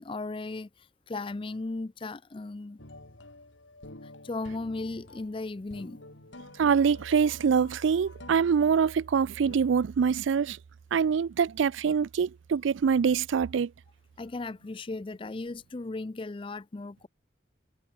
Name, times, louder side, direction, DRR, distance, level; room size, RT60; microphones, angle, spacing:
voice 1, 0.0-2.8 4.0-6.0 14.2-17.1, left 3 dB, 25° left, 0.4 m, -36 dB
sound 1, 2.8-9.6, left 2 dB, 75° left, 4.1 m, -50 dB
voice 2, 6.6-10.6 10.9-13.7, right 6 dB, 75° right, 0.4 m, -24 dB
head